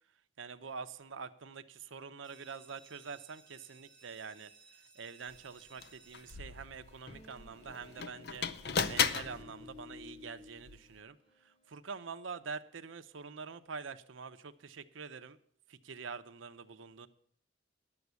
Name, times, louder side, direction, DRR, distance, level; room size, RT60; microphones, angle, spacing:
voice 1, 0.4-4.5 5.0-8.5 8.8-11.2 11.4-15.4 15.7-17.1, right 5 dB, 90° right, 10 dB, 0.7 m, -46 dB
sound 1, 2.2-7.7, right 5 dB, 5° left, 1.5 m, -61 dB
sound 2, 5.3-5.4 5.8-11.0, left 6 dB, 55° left, 0.6 m, -37 dB
sound 3, 6.6-11.8, left 4 dB, 35° left, 1.0 m, -56 dB
11.0 x 7.1 x 8.1 m, 0.63 s
head